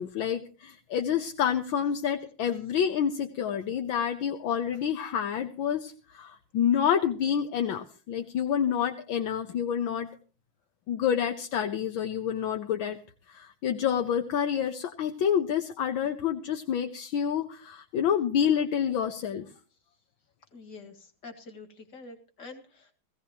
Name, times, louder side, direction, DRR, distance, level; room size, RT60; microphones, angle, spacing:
voice 1, 0.0-10.1 10.9-13.0 13.3-19.5, left 8 dB, 75° left, 6 dB, 1.7 m, -28 dB
voice 2, 20.5-22.9, left 3 dB, 55° left, 7 dB, 2.6 m, -46 dB
18.5 x 16.0 x 2.9 m, 0.36 s
omnidirectional pair, 2.2 m